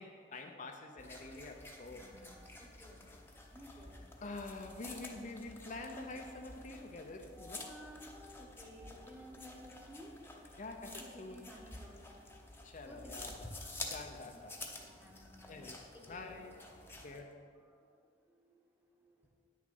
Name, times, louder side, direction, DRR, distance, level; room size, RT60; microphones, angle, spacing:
voice 1, 0.0-2.1 4.2-7.7 10.6-11.5 12.6-13.5 13.8-14.5 15.5-16.6 16.9-17.4, left 3 dB, 45° left, 4 dB, 0.6 m, -47 dB
sound 1, 1.0-17.2, left 2 dB, 15° left, 0.9 m, -50 dB
voice 2, 1.9-3.2 3.5-4.1 4.9-5.0 7.3-10.3 10.6-17.3 17.6-19.3, equal, 10° right, -1 dB, 1.1 m, -56 dB
9.6 x 6.4 x 5.3 m, 2.2 s
head